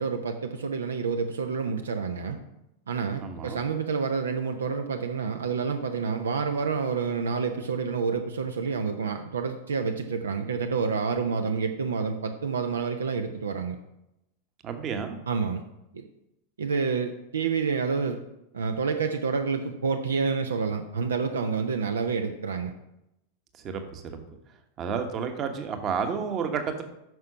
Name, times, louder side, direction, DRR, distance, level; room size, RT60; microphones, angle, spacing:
voice 1, 0.0-2.4 2.9-13.8 15.3-15.6 15.9-16.0 16.6-18.2 18.5-22.7, right 5 dB, 70° right, 7 dB, 0.7 m, -28 dB
voice 2, 3.2-3.6 14.6-15.2 23.5-24.4 24.8-26.8, right 6 dB, 30° right, 7 dB, 1.3 m, -31 dB
9.4 x 6.2 x 5.7 m, 0.88 s
figure-of-eight pair, 90°, 0 cm